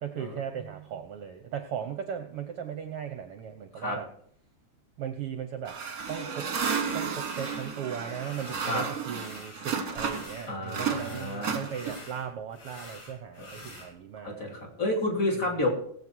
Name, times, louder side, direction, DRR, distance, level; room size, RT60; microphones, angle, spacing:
voice 1, 0.0-4.1 5.0-5.8 6.1-6.5 6.9-14.5, right 8 dB, 65° right, 8 dB, 1.6 m, -37 dB
sound 1, 5.6-10.4 10.7-12.2, right 6 dB, 40° right, 1.6 m, -33 dB
sound 2, 7.2-7.7 8.1-8.7 9.0-10.5 10.8-13.9, left 1 dB, 65° left, 5.7 m, -47 dB
voice 2, 10.5-11.6 13.4-13.6 14.2-15.7, left 1 dB, 25° left, -1 dB, 3.4 m, -30 dB
19.0 x 8.2 x 4.5 m, 0.63 s
omnidirectional pair, 3.3 m